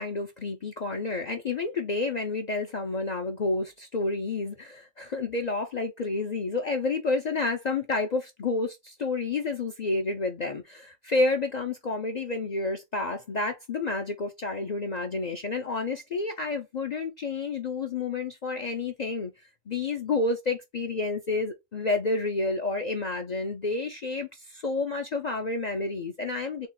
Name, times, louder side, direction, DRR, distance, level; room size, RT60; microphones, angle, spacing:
voice 1, 0.0-19.3 19.7-26.7, left 3 dB, 50° left, 0.5 m, -30 dB
3.7 x 2.3 x 4.1 m
omnidirectional pair, 1.4 m